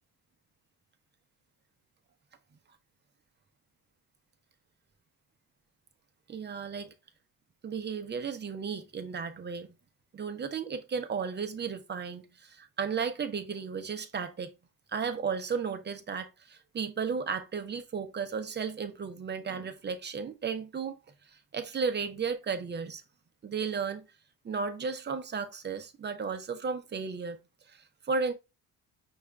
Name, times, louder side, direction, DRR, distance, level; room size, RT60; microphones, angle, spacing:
voice 1, 6.3-6.9 7.6-9.7 10.1-14.5 14.9-20.9 21.5-23.0 23.4-24.0 24.4-27.4 27.7-28.3, right 5 dB, 30° right, 0.6 m, -34 dB
5.5 x 2.5 x 3.2 m
cardioid pair, 120°, 37 cm